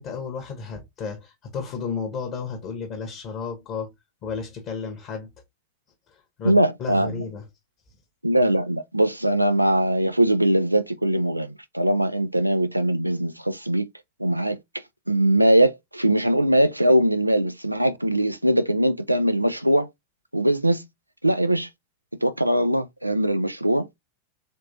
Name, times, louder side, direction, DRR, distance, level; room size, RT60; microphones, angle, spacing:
voice 1, 0.0-3.9 4.2-5.3 6.1-7.4, left 5 dB, 35° left, 1.2 m, -33 dB
voice 2, 6.4-7.2 8.2-13.9 14.2-14.6 15.1-19.9 20.3-20.9 21.2-21.7 22.2-23.9, right 1 dB, 85° right, 0.4 m, -21 dB
4.2 x 3.1 x 2.6 m
figure-of-eight pair, 90°, 0 cm